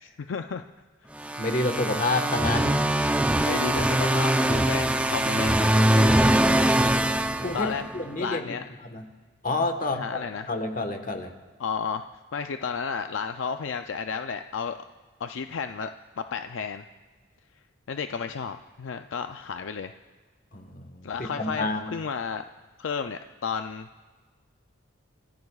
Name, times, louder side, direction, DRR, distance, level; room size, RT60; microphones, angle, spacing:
voice 1, 0.0-0.6 3.4-6.1 7.5-7.8 8.2-8.6 9.9-10.5 11.6-12.1 12.3-14.8 15.2-15.9 16.2-16.8 17.9-19.9 21.0-22.4 22.8-23.9, left 6 dB, 65° left, 7 dB, 0.4 m, -32 dB
sound 1, 1.2-8.1, right 1 dB, 5° right, 0.4 m, -22 dB
voice 2, 1.4-2.9 7.4-8.5 8.9-9.0 9.4-10.2 10.5-11.3 20.5-21.9, left 2 dB, 40° left, 5 dB, 1.3 m, -29 dB
29.5 x 15.5 x 2.4 m, 1.5 s
head